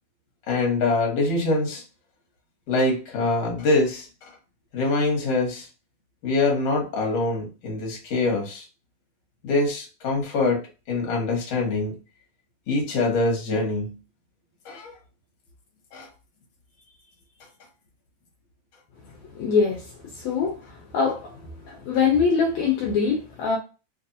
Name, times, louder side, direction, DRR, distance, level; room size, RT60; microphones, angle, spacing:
voice 1, 0.5-1.8 2.7-4.1 4.7-5.7 6.2-8.7 9.4-10.6 10.9-11.9 12.7-13.9 14.7-14.9 15.9-16.1, left 2 dB, 60° left, 2.2 m, -24 dB
voice 2, 19.4-19.8 20.2-20.6 20.9-21.4 21.7-23.6, left 5 dB, 75° left, 2.0 m, -23 dB
4.6 x 2.5 x 2.7 m
omnidirectional pair, 3.4 m